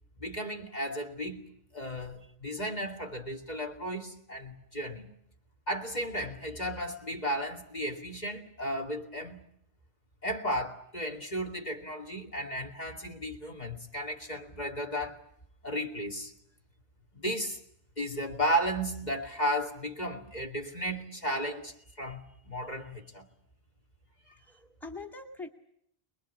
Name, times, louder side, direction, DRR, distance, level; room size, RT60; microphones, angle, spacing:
voice 1, 0.2-1.4 1.7-5.1 5.7-9.4 10.2-15.2 15.6-16.3 17.1-17.6 18.0-23.2 24.3-24.4, equal, 45° left, 2.7 m, -34 dB
voice 2, 24.4-25.5, left 3 dB, ahead, 2.0 m, -43 dB
24.5 x 21.5 x 8.4 m
omnidirectional pair, 1.1 m